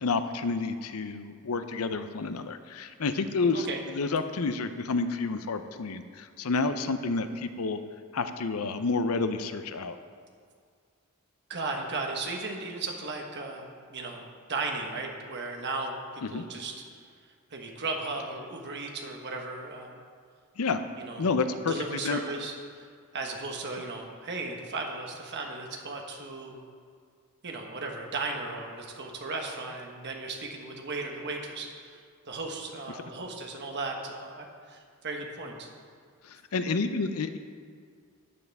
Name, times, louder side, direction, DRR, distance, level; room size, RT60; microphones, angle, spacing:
voice 1, 0.0-7.8 8.1-10.0 16.2-16.4 20.6-20.8 21.2-21.7 22.0-22.2 36.2-37.4, left 4 dB, 80° left, 10 dB, 0.6 m, -29 dB
voice 2, 11.5-16.8 17.5-20.0 21.0-22.9 23.1-26.6 27.4-32.0 32.2-35.7, right 3 dB, 50° right, 1 dB, 1.3 m, -36 dB
13.5 x 9.5 x 3.5 m, 2.1 s
head